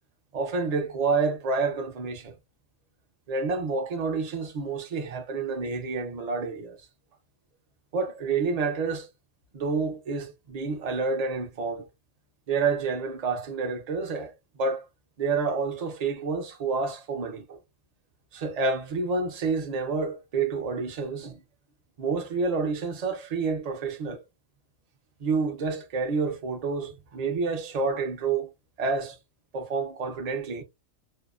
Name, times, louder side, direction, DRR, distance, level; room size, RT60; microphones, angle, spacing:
voice 1, 0.3-2.3 3.3-6.8 7.9-9.1 9.5-11.8 12.5-14.3 14.6-14.8 15.2-17.6 18.3-21.4 22.0-24.2 25.2-28.5 28.8-29.2 29.5-30.6, right 4 dB, 50° right, 0.5 m, -28 dB
2.6 x 2.0 x 2.3 m
omnidirectional pair, 1.3 m